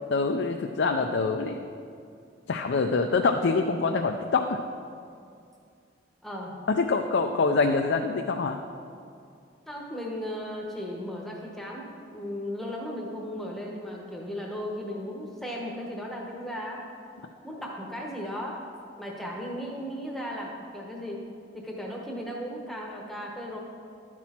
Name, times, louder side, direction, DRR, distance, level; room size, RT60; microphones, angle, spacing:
voice 1, 0.1-1.7 2.5-4.6 6.7-8.6, left 4 dB, 65° left, 4 dB, 0.4 m, -25 dB
voice 2, 6.2-6.6 9.7-16.8 17.4-18.6 19.0-21.2 21.5-23.6, equal, ahead, -2 dB, 0.9 m, -36 dB
11.5 x 6.1 x 4.3 m, 2.4 s
head